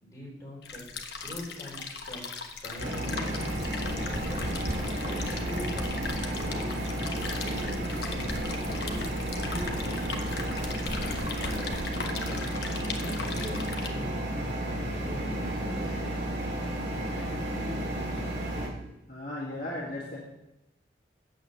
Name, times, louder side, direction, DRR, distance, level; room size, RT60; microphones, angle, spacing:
voice 1, 0.0-0.8 1.2-3.4 4.0-6.9 7.4-8.0 8.6-10.7 10.9-11.7 12.0-12.4 12.7-14.4 15.0-16.2 17.1-17.8, equal, 20° left, -4 dB, 4.3 m, -43 dB
sound 1, 0.6-13.9, left 5 dB, 65° left, 1.2 m, -39 dB
sound 2, 2.8-18.7, right 1 dB, 70° right, 3.2 m, -32 dB
sound 3, 3.2-11.9, equal, 40° right, 1.4 m, -42 dB
voice 2, 19.1-20.2, left 1 dB, 50° left, -5 dB, 2.2 m, -36 dB
8.7 x 7.9 x 6.8 m, 0.90 s
head